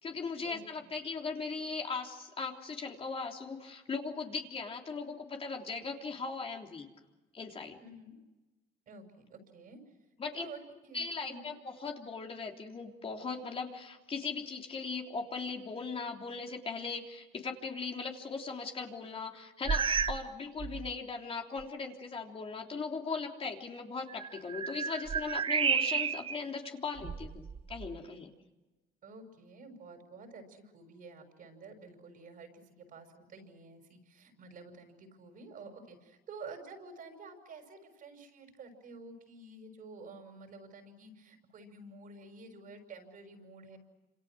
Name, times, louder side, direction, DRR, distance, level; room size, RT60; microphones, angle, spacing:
voice 1, 0.0-6.9 7.3-7.8 10.2-10.5 10.9-28.3, left 4 dB, 35° left, 2 dB, 3.4 m, -39 dB
voice 2, 7.8-8.2 8.9-9.8 10.3-11.6 29.0-43.8, right 3 dB, 55° right, 6 dB, 6.1 m, -50 dB
sound 1, 19.6-20.3 20.6-20.9 21.6-21.7 24.1-26.4 27.0-28.0, right 6 dB, 30° right, 0.8 m, -32 dB
28.5 x 27.5 x 6.3 m, 1.1 s
cardioid pair, 110°, 17 cm